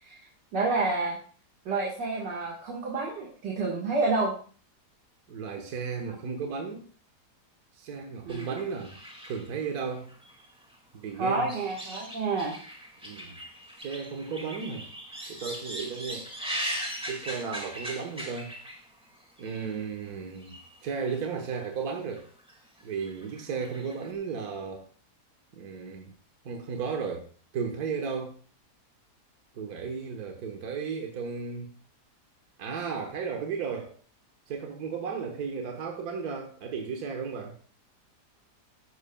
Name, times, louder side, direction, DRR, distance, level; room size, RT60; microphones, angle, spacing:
voice 1, 0.5-1.2 1.7-4.3 6.1-6.2 8.3-8.5 11.2-12.6, right 3 dB, 85° right, -3 dB, 2.3 m, -29 dB
voice 2, 5.3-6.9 7.8-8.9 9.2-10.1 10.9-11.5 13.0-13.4 13.8-14.9 15.3-16.3 17.1-18.6 19.4-20.6 20.8-22.3 22.8-24.9 25.5-26.1 26.4-27.3 27.5-28.4 29.5-31.7 32.6-33.9 34.5-37.6, right 5 dB, 65° right, 3 dB, 1.7 m, -34 dB
sound 1, 8.3-10.7 11.1-19.0 19.4-19.7 20.4-20.9 21.1-21.2 22.1-22.5 22.8-24.1, equal, 5° right, 2.0 m, -39 dB
14.5 x 10.5 x 2.3 m, 0.41 s
omnidirectional pair, 1.8 m